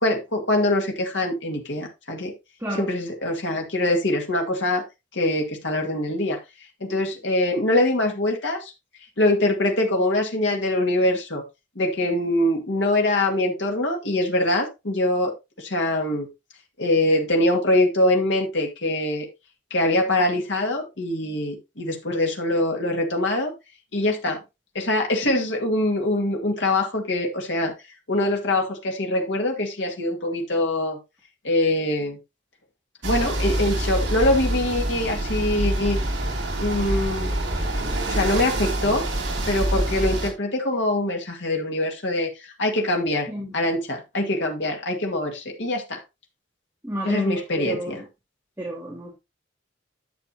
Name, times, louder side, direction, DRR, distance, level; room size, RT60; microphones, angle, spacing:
voice 1, 0.0-2.3 2.8-4.8 5.1-6.4 6.8-8.7 9.2-11.4 11.8-15.3 15.6-16.3 16.8-19.3 19.7-23.5 23.9-24.4 24.7-27.7 28.1-31.0 31.4-32.2 33.0-36.0 36.6-37.4 38.1-39.0 39.5-43.3 43.5-46.0 47.0-48.0, left 1 dB, 70° left, 2.0 m, -23 dB
voice 2, 2.6-2.9 43.3-43.5 46.8-48.0 48.6-49.1, equal, 10° right, 2.3 m, -31 dB
sound 1, 33.0-40.3, right 1 dB, 65° right, 2.7 m, -26 dB
10.5 x 6.8 x 2.7 m
head